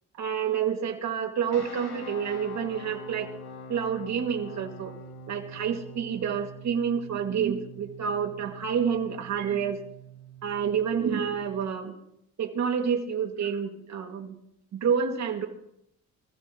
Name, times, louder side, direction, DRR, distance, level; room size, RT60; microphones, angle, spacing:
voice 1, 0.2-3.3 3.7-4.9 5.3-9.8 10.4-12.0 12.4-14.4 14.7-15.5, right 7 dB, 65° right, 4 dB, 2.3 m, -28 dB
sound 1, 1.5-11.7, equal, 60° left, 3.8 m, -45 dB
25.5 x 15.0 x 3.0 m, 0.77 s
cardioid pair, 90°, 30 cm